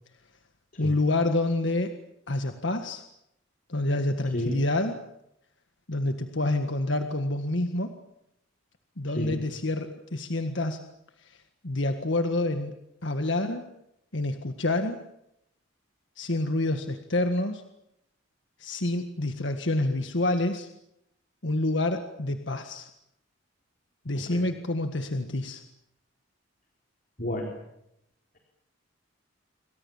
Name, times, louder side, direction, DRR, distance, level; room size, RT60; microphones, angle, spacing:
voice 1, 0.8-1.9 2.3-3.0 3.7-5.0 5.9-7.9 9.0-10.8 11.2-11.4 11.6-12.8 13.0-13.6 14.1-15.0 16.2-17.6 18.6-20.7 21.4-22.9 24.1-25.6, left 2 dB, 60° left, 7 dB, 1.8 m, -27 dB
voice 2, 27.2-27.5, left 1 dB, 40° left, 2 dB, 4.0 m, -30 dB
28.0 x 24.5 x 7.3 m, 0.80 s
head